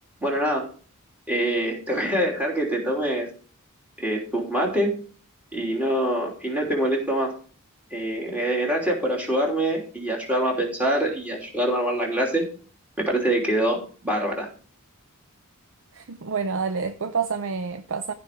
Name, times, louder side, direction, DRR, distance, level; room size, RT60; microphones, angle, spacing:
voice 1, 0.2-0.7 1.3-3.3 4.0-5.0 5.5-7.3 7.9-12.4 13.0-14.5, right 1 dB, 5° right, 3.2 m, -25 dB
voice 2, 15.9-18.1, right 5 dB, 60° right, 0.6 m, -28 dB
15.0 x 5.1 x 4.5 m
head